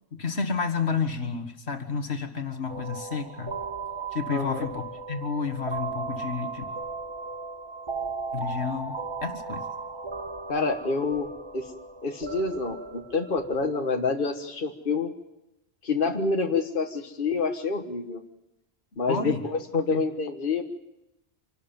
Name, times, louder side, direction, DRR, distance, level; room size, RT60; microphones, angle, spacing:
voice 1, 0.1-3.6 4.1-6.6 8.3-9.6 19.1-19.4 19.7-20.0, left 5 dB, 80° left, 6 dB, 2.0 m, -30 dB
sound 1, 2.7-13.7, right 4 dB, 30° right, 1.0 m, -36 dB
voice 2, 4.3-4.7 10.5-11.6 12.0-15.1 15.8-18.2 19.0-20.6, left 4 dB, 55° left, 4 dB, 1.6 m, -27 dB
27.0 x 12.5 x 9.1 m, 0.90 s
omnidirectional pair, 1.1 m